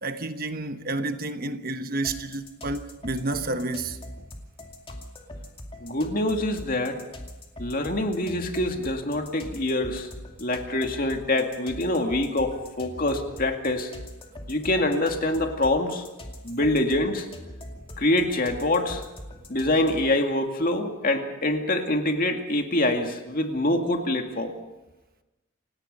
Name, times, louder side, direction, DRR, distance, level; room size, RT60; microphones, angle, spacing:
voice 1, 0.0-4.0, right 2 dB, 45° right, 1.1 m, -30 dB
sound 1, 2.0-20.2, left 1 dB, 25° left, 2.5 m, -42 dB
voice 2, 5.8-7.0 7.6-10.1 10.4-13.9 14.5-16.1 16.4-17.3 18.0-19.0 19.5-24.6, left 1 dB, 40° left, 2.3 m, -25 dB
29.0 x 17.5 x 5.4 m
head